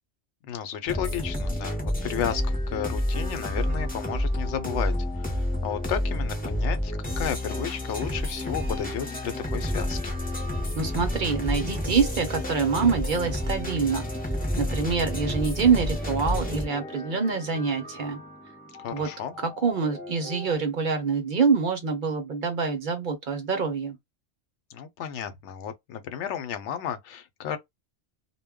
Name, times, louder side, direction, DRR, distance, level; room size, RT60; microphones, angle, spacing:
voice 1, 0.4-10.1 18.8-19.3 24.7-27.6, left 9 dB, 85° left, 0.9 m, -33 dB
sound 1, 0.9-20.6, left 1 dB, 10° left, 0.5 m, -30 dB
voice 2, 10.8-18.2 18.9-19.1 19.4-24.0, right 5 dB, 55° right, 0.7 m, -26 dB
2.2 x 2.1 x 3.5 m
omnidirectional pair, 1.2 m